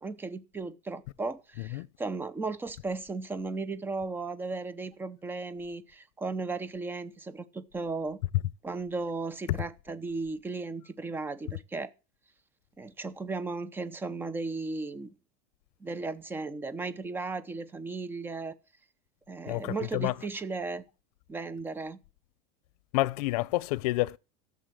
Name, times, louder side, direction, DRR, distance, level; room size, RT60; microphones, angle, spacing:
voice 1, 0.0-8.2 8.6-11.9 12.8-15.1 15.8-18.6 19.3-20.8 21.3-22.0, right 3 dB, 10° right, 0.8 m, -35 dB
voice 2, 19.5-20.1 22.9-24.2, left 19 dB, 85° left, 0.6 m, -29 dB
14.0 x 7.1 x 7.7 m
cardioid pair, 170°, 19 cm